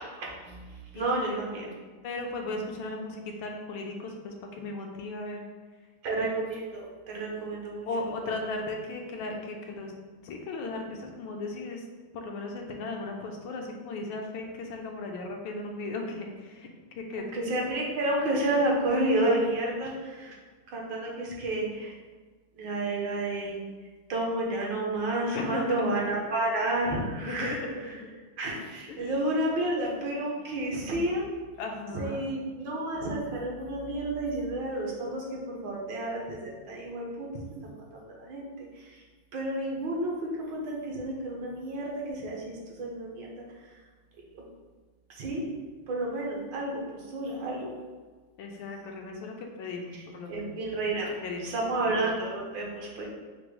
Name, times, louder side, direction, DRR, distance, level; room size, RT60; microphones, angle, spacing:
voice 1, 0.0-1.7 6.0-8.4 17.1-20.4 20.7-21.9 22.5-23.6 24.1-27.9 28.4-31.3 31.9-37.3 37.6-39.0 39.3-43.8 44.3-44.4 45.1-45.4 45.9-47.8 49.9-50.0 50.3-51.1 51.4-53.1, right 1 dB, 70° right, -2 dB, 1.4 m, -31 dB
voice 2, 2.0-5.4 7.9-9.9 10.2-11.9 12.1-16.7 16.9-17.3 25.3-25.9 27.3-28.1 28.9-29.1 31.6-32.2 48.4-50.5 51.2-51.7, left 2 dB, 80° left, 2 dB, 1.4 m, -36 dB
5.0 x 2.0 x 4.5 m, 1.4 s
omnidirectional pair, 2.2 m